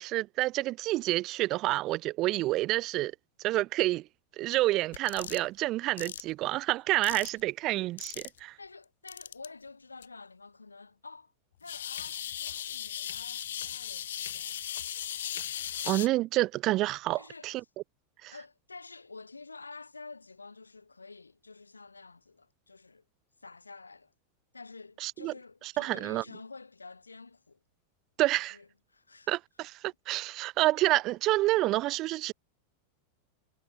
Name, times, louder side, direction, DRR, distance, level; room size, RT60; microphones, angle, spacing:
voice 1, 0.0-3.1 3.4-4.0 4.4-8.5 15.8-17.6 18.2-18.3 25.0-25.3 25.8-26.2 28.2-28.6 29.3-32.3, right 17 dB, 35° right, 0.5 m, -28 dB
sound 1, 4.9-5.4 6.0-6.2 7.0-7.4 8.0-8.4 9.1-9.5 10.0-10.1 11.7-16.1, left 11 dB, 60° left, 0.8 m, -37 dB
voice 2, 8.6-11.3 11.6-14.6 17.1-17.6 18.3-23.0 23.4-24.1 24.5-27.6 28.5-29.3, left 3 dB, 80° left, 2.8 m, -49 dB
figure-of-eight pair, 90°, 0 cm